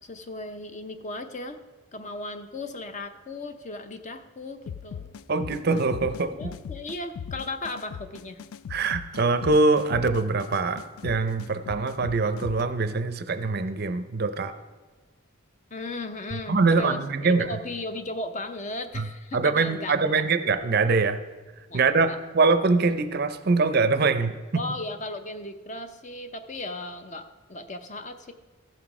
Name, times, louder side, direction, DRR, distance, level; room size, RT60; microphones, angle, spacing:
voice 1, 0.0-1.6 1.9-5.2 6.4-8.4 15.7-20.2 21.7-22.2 24.5-28.3, left 2 dB, 35° left, 8 dB, 0.6 m, -36 dB
sound 1, 4.7-12.6, left 7 dB, 75° left, 0.3 m, -39 dB
voice 2, 5.3-6.3 8.7-14.5 16.5-17.5 19.0-19.1 19.3-21.2 21.7-24.4, right 4 dB, 45° right, 11 dB, 0.5 m, -23 dB
15.0 x 5.9 x 4.8 m, 1.3 s
head